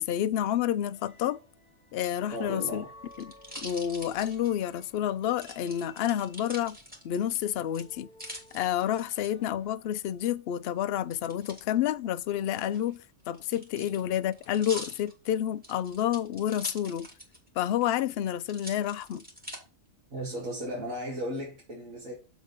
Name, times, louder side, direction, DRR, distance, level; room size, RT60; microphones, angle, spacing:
voice 1, 0.0-1.4 1.9-2.8 3.2-3.3 3.6-6.8 7.0-8.1 8.5-13.0 13.3-17.1 17.6-19.2, left 11 dB, 65° left, 0.6 m, -29 dB
sound 1, 0.7-10.0, left 1 dB, 25° left, 0.8 m, -55 dB
voice 2, 2.3-2.9 20.1-22.1, equal, 80° right, 2.4 m, -35 dB
sound 2, 2.5-4.9 5.4-7.4 7.7-9.3 11.1-11.6 12.6-17.5 17.8-17.9 18.5-19.6 20.2-20.8, equal, 5° right, 1.9 m, -44 dB
7.2 x 3.7 x 5.3 m
omnidirectional pair, 1.4 m